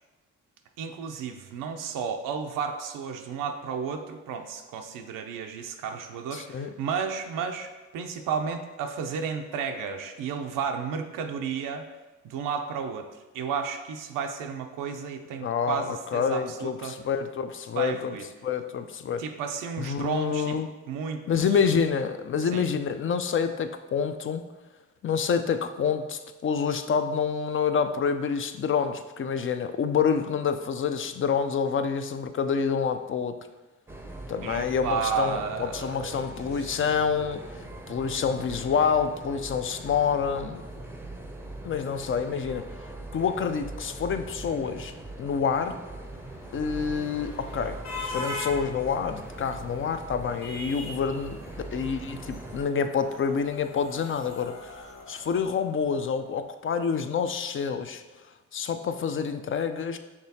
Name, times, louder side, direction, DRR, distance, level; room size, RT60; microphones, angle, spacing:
voice 1, 0.8-11.9 12.2-13.1 13.3-17.0 17.7-18.2 19.2-20.6 20.9-21.2 22.4-22.6 34.4-36.2 36.5-36.8, right 6 dB, 80° right, 4 dB, 0.5 m, -32 dB
voice 2, 6.3-6.7 15.4-18.2 18.4-19.2 19.8-20.7 21.3-24.4 25.0-33.4 34.3-40.6 41.6-44.9 45.2-45.8 46.5-51.4 51.7-58.0 58.5-60.0, left 6 dB, 40° left, 9 dB, 0.5 m, -27 dB
sound 1, 33.9-52.6, right 2 dB, 5° right, 0.6 m, -41 dB
sound 2, 45.8-56.1, left 2 dB, 55° left, 0.8 m, -42 dB
5.9 x 3.2 x 2.8 m, 1.2 s
supercardioid pair, 50°, 32 cm